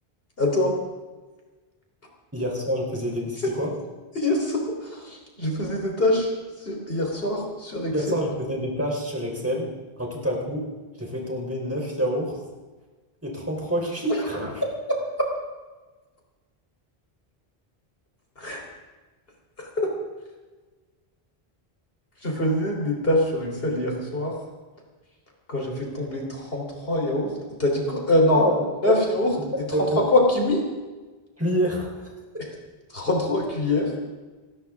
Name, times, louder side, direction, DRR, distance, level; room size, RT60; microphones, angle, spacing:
voice 1, 0.4-0.7 4.2-4.6 5.0-6.3 6.6-8.1 14.9-15.0 18.4-18.6 19.6-19.9 22.2-24.3 25.5-27.3 27.6-28.4 28.8-29.3 30.0-30.6 32.9-33.9, left 1 dB, 65° left, -1 dB, 3.9 m, -24 dB
voice 2, 2.3-3.8 7.9-9.7 10.0-10.7 11.0-12.4 13.2-14.7 28.3-29.0 29.5-30.1 31.4-32.4, equal, 15° right, -1 dB, 3.6 m, -27 dB
27.5 x 13.0 x 3.6 m, 1.3 s
omnidirectional pair, 1.0 m